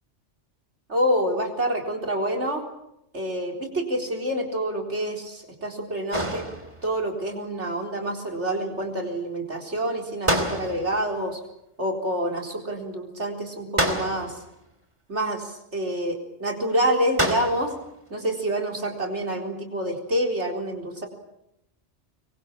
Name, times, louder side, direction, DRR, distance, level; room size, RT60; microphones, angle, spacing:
voice 1, 0.9-2.6 3.1-6.4 6.8-11.4 11.8-14.4 15.1-17.7 18.1-21.1, right 1 dB, 70° right, 2 dB, 4.4 m, -27 dB
sound 1, 6.1-7.0 10.3-11.1 13.8-14.5 17.2-17.8, right 1 dB, 25° right, 3.0 m, -27 dB
26.5 x 22.5 x 7.5 m, 0.82 s
omnidirectional pair, 1.2 m